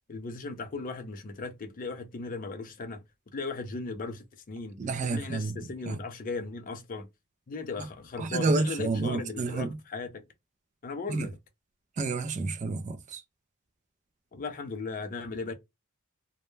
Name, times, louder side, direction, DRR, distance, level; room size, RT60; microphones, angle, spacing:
voice 1, 0.1-3.0 3.3-4.8 5.1-7.1 7.5-10.2 10.8-11.4 14.3-15.5, left 3 dB, 40° left, 0.5 m, -37 dB
voice 2, 4.8-6.0 8.2-9.8 11.1-11.3 12.0-13.2, right 3 dB, 35° right, 0.3 m, -30 dB
2.1 x 2.1 x 3.1 m
head